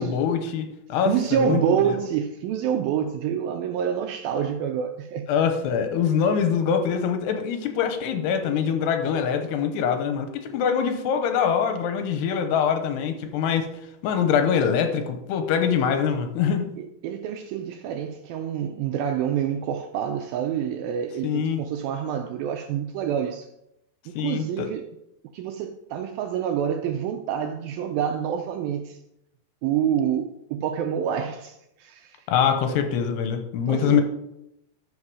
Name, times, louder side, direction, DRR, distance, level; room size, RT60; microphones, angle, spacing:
voice 1, 0.0-1.8 5.3-13.7 14.0-16.7 21.2-21.6 24.2-24.7 32.3-34.0, left 7 dB, 85° left, 3.1 m, -24 dB
voice 2, 1.1-5.3 16.8-23.5 24.2-24.8 25.3-29.0 29.6-32.2 32.7-32.9 33.7-34.0, right 8 dB, 80° right, 2.1 m, -27 dB
13.0 x 5.4 x 4.8 m
omnidirectional pair, 4.7 m